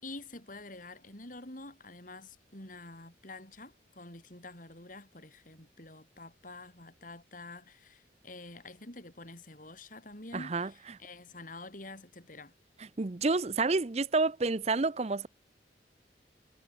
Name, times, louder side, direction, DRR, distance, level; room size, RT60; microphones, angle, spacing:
voice 1, 0.0-12.5, left 2 dB, 50° left, 6.1 m, -48 dB
voice 2, 10.3-10.7 13.0-15.3, right 3 dB, 35° right, 0.7 m, -29 dB
head